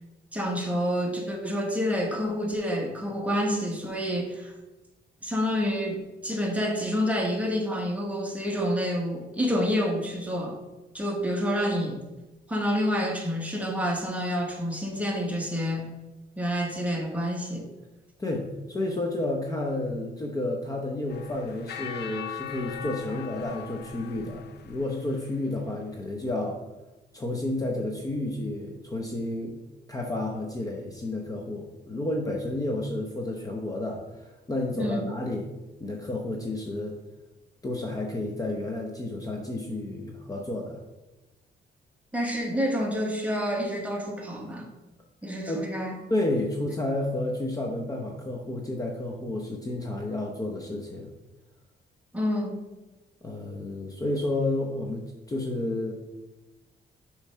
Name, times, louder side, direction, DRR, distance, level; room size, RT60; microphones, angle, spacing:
voice 1, 0.3-4.5 5.2-10.6 10.9-12.0 12.5-15.9 16.4-17.7 34.8-35.1 42.1-44.7 45.2-46.0 52.1-52.6, equal, 10° right, 0 dB, 1.1 m, -28 dB
voice 2, 18.2-26.6 27.1-29.6 29.9-35.5 35.8-37.0 37.6-40.8 45.5-45.7 46.1-51.1 53.2-55.9, left 2 dB, 20° left, 0 dB, 0.7 m, -31 dB
sound 1, 21.1-25.4, left 9 dB, 65° left, 0.5 m, -40 dB
6.8 x 3.2 x 5.6 m, 1.1 s
cardioid pair, 135°, 18 cm